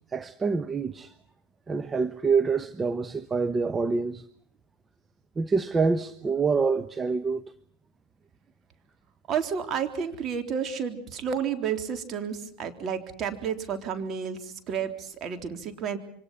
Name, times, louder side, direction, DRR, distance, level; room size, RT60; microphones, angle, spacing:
voice 1, 0.1-1.1 1.7-4.2 5.4-7.5, right 4 dB, 20° right, 1.0 m, -26 dB
voice 2, 9.3-16.0, right 7 dB, 40° right, 3.6 m, -31 dB
27.0 x 25.0 x 5.7 m
hypercardioid pair, 95°, 0 cm